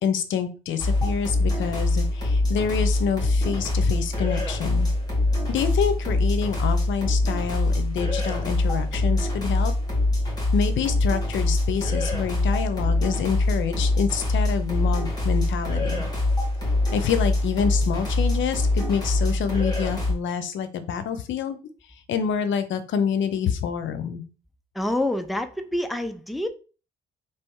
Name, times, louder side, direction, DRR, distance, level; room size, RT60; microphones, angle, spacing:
voice 1, 0.0-4.9 5.5-9.7 10.5-16.0 16.9-21.6 22.1-24.2, left 7 dB, 70° left, 0.7 m, -27 dB
sound 1, 0.8-20.1, left 2 dB, 20° left, 2.0 m, -24 dB
voice 2, 24.8-26.5, left 1 dB, ahead, 0.5 m, -27 dB
3.4 x 3.0 x 4.6 m
cardioid pair, 90°, 20 cm